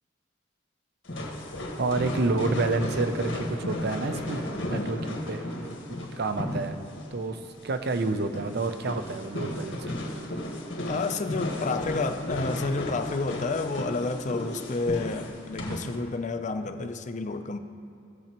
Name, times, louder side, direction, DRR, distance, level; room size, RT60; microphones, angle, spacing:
sound 1, 1.0-15.9, left 1 dB, 75° left, 1.5 m, -34 dB
voice 1, 1.8-5.5 6.1-6.8 7.1-10.0 15.7-15.8, right 3 dB, 55° right, 8 dB, 0.6 m, -29 dB
voice 2, 10.9-17.6, left 3 dB, 40° left, 9 dB, 0.5 m, -30 dB
18.0 x 7.1 x 3.0 m, 2.7 s
head